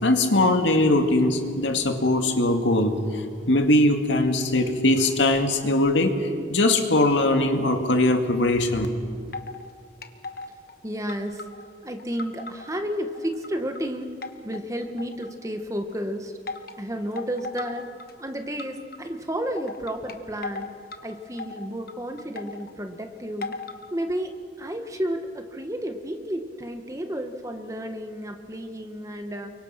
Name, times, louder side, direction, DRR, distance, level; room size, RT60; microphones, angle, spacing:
voice 1, 0.0-8.9, left 1 dB, 80° left, 5 dB, 2.3 m, -21 dB
sound 1, 9.3-9.7 10.0-10.7 11.1-12.8 13.1-13.8 14.2-15.5 16.5-16.7 17.2-18.1 18.6-19.0 19.6-21.0 21.4-22.7 23.4-23.9, left 3 dB, 55° left, 1.3 m, -37 dB
voice 2, 10.8-11.4 11.8-14.1 14.4-16.3 16.8-17.9 18.2-20.7 21.0-23.5 23.9-29.5, equal, 15° right, 6 dB, 1.5 m, -32 dB
29.5 x 24.0 x 5.9 m, 2.3 s
head